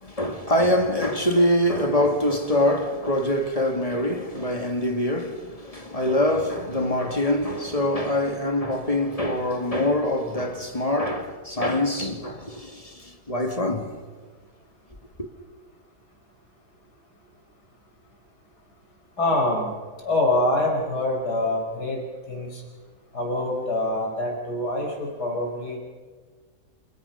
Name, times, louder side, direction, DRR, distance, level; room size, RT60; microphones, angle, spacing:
voice 1, 0.0-14.0, left 1 dB, 20° left, 2.2 m, -24 dB
voice 2, 19.2-19.7 20.0-22.6 23.1-25.8, left 1 dB, 85° left, 5.7 m, -25 dB
30.0 x 28.0 x 5.8 m
omnidirectional pair, 1.7 m